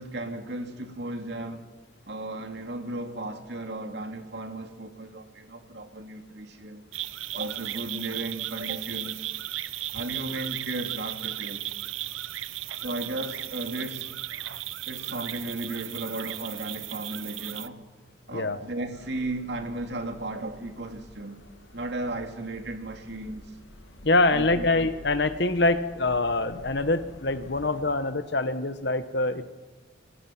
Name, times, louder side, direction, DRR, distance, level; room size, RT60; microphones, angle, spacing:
voice 1, 0.0-1.6 2.1-6.8 7.3-9.3 9.9-11.6 12.8-14.4 14.9-17.8 18.3-21.4 21.7-23.5 24.3-24.7, right 2 dB, 60° right, 2.5 m, -35 dB
sound 1, 6.9-17.7, right 14 dB, 85° right, 0.7 m, -35 dB
voice 2, 18.3-18.6 24.0-29.4, left 2 dB, 60° left, 1.2 m, -25 dB
sound 2, 18.9-27.8, left 1 dB, 80° left, 2.4 m, -48 dB
26.5 x 22.0 x 6.0 m
head